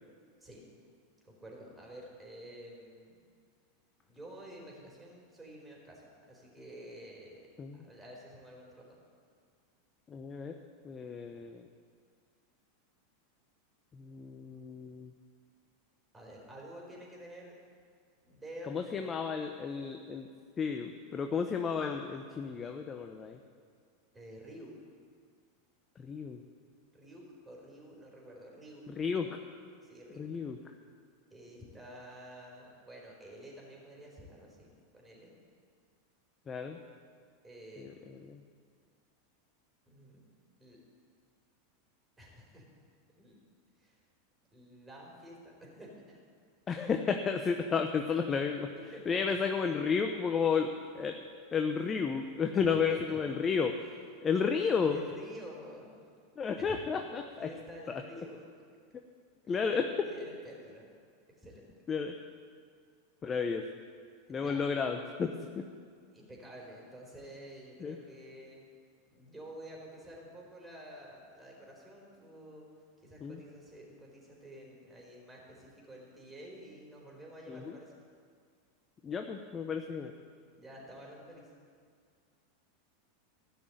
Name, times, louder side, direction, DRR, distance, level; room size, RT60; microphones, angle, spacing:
voice 1, 1.2-3.2 4.1-7.5 7.7-9.0 16.1-17.5 18.2-19.1 24.1-24.7 26.9-29.3 29.8-30.3 31.3-35.3 37.4-38.1 39.9-40.2 40.6-40.8 42.2-42.7 43.2-43.4 43.8-44.0 44.5-46.2 48.9-49.3 52.5-53.2 54.9-55.9 56.6-56.8 57.4-58.5 59.4-60.9 61.4-61.7 64.3-64.6 66.1-68.6 69.1-72.7 73.0-77.9 80.5-81.5, right 1 dB, 10° right, -2 dB, 4.3 m, -50 dB
voice 2, 10.1-10.5 10.8-11.6 13.9-15.1 18.7-20.3 20.6-23.4 26.0-26.4 29.0-29.3 30.2-30.6 36.5-36.8 37.8-37.9 38.2-38.4 46.7-48.7 49.1-50.7 50.9-51.2 51.5-53.8 54.2-55.0 56.4-57.5 57.9-58.0 59.5-60.1 61.9-62.1 63.2-63.6 64.3-65.6 67.8-68.0 73.2-73.4 77.5-77.8 79.0-80.1, left 6 dB, 25° left, 5 dB, 0.8 m, -32 dB
13.5 x 6.3 x 9.1 m, 2.1 s
hypercardioid pair, 100°, 0 cm